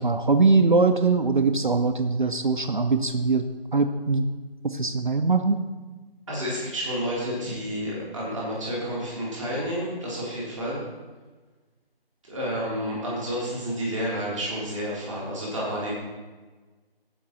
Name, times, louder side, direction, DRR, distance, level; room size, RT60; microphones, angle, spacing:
voice 1, 0.0-4.3 4.6-5.7, right 4 dB, 55° right, 7 dB, 0.6 m, -22 dB
voice 2, 6.3-10.8 12.3-15.9, equal, ahead, -18 dB, 1.1 m, -30 dB
15.5 x 5.2 x 4.2 m, 1.3 s
figure-of-eight pair, 170°, 30 cm